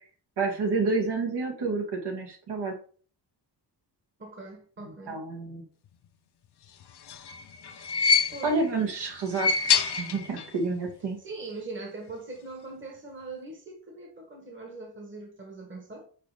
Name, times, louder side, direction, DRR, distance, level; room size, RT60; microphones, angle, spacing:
voice 1, 0.4-2.8 4.8-5.6 8.4-9.7 10.0-11.2, right 3 dB, 70° right, 2.3 m, -29 dB
voice 2, 4.2-5.2 8.3-8.5 11.2-16.1, right 3 dB, 30° right, 1.6 m, -41 dB
sound 1, 6.8-8.7 9.2-10.6 10.9-11.0 12.1-12.2, left 6 dB, 70° left, 0.8 m, -27 dB
5.8 x 4.9 x 5.0 m
wide cardioid pair, 155°, 41 cm